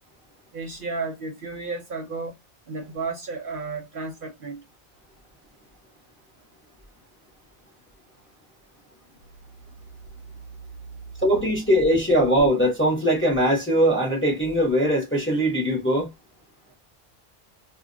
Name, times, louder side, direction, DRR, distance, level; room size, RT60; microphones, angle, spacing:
voice 1, 0.5-2.3 2.7-4.6, right 3 dB, 55° right, 0.7 m, -33 dB
voice 2, 11.2-16.1, equal, 15° left, 0.6 m, -21 dB
2.1 x 2.1 x 3.7 m
omnidirectional pair, 1.2 m